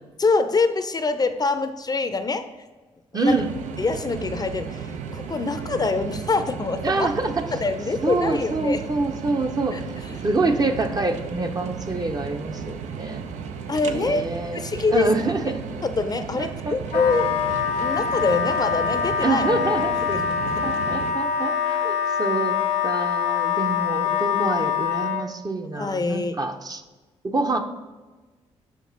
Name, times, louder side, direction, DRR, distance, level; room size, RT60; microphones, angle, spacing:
voice 1, 0.2-2.5 3.1-3.3 3.8-7.1 7.5-8.8 9.7-9.8 10.1-10.3 13.7-15.1 15.8-17.3 17.8-19.4 20.0-20.6 25.7-26.4, left 3 dB, 35° left, 9 dB, 0.5 m, -25 dB
voice 2, 3.1-3.5 6.8-7.5 8.0-9.8 10.2-13.2 13.8-14.6 14.9-15.6 16.4-17.0 19.2-19.9 20.6-22.6 22.8-26.8 27.2-27.6, right 3 dB, 35° right, 6 dB, 0.7 m, -26 dB
sound 1, 3.3-21.1, right 6 dB, 80° right, 0.6 m, -35 dB
Wind instrument woodwind instrument, 16.9-25.2, left 8 dB, 75° left, 0.6 m, -24 dB
5.9 x 5.2 x 3.9 m, 1.2 s
supercardioid pair, 60°, 12 cm